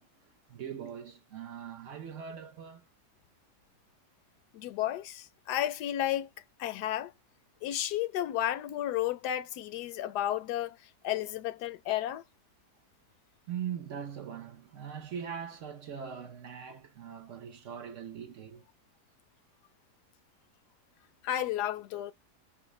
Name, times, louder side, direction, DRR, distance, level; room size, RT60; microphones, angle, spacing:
voice 1, 0.0-2.8 13.5-18.6, right 8 dB, 60° right, 0.9 m, -41 dB
voice 2, 4.5-6.3 6.6-7.1 7.6-10.8 11.0-12.2 21.2-22.1, left 12 dB, 85° left, 1.1 m, -32 dB
5.6 x 2.4 x 3.1 m
omnidirectional pair, 1.7 m